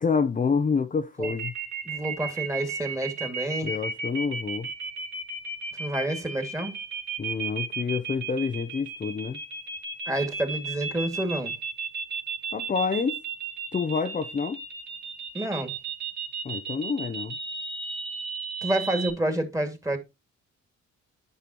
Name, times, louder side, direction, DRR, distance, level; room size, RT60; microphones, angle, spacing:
voice 1, 0.0-1.5 3.6-4.7 7.2-9.4 12.5-13.2 13.7-14.6 16.4-17.4, left 5 dB, 25° left, 0.7 m, -28 dB
sound 1, 1.2-19.1, right 5 dB, 70° right, 3.0 m, -34 dB
voice 2, 1.9-3.7 5.8-6.8 10.1-11.5 15.3-15.7 18.6-20.0, right 1 dB, 10° right, 2.3 m, -29 dB
10.5 x 5.6 x 3.0 m
cardioid pair, 90°, 30 cm